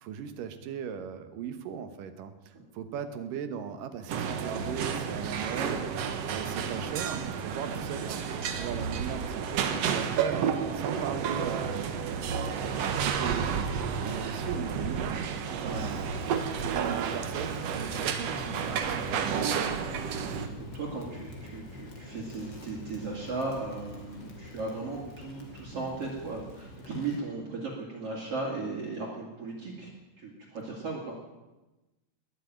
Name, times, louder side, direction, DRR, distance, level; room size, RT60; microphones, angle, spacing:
voice 1, 0.0-5.9 6.3-8.2 8.5-11.9 12.6-15.3 15.6-16.3 16.6-19.9, right 8 dB, 80° right, 9 dB, 2.8 m, -38 dB
sound 1, 4.1-20.5, right 7 dB, 65° right, 1.9 m, -31 dB
voice 2, 5.5-5.8 15.6-15.9 20.3-29.9 30.2-31.3, right 3 dB, 45° right, -3 dB, 3.4 m, -37 dB
Crackle, 15.7-27.3, left 1 dB, 35° left, 2.9 m, -45 dB
20.5 x 7.6 x 9.1 m, 1.1 s
omnidirectional pair, 3.8 m